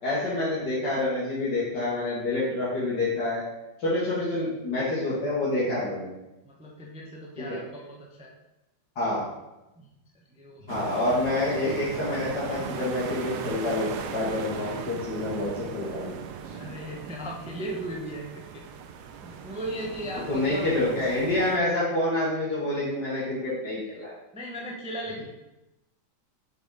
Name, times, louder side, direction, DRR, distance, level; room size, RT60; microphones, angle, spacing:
voice 1, 0.0-3.4 3.8-6.1 7.4-7.6 9.0-9.3 10.7-16.1 16.4-16.5 20.3-24.1, left 2 dB, 70° left, -9 dB, 2.2 m, -27 dB
voice 2, 6.4-8.3 9.8-9.9 10.3-10.7 16.5-18.6 19.2-20.7 21.0-21.3 24.3-25.2, right 1 dB, 10° right, -2 dB, 0.3 m, -37 dB
sound 1, 10.7-21.6, right 7 dB, 75° right, 1.1 m, -38 dB
6.0 x 4.0 x 4.8 m, 0.97 s
omnidirectional pair, 1.9 m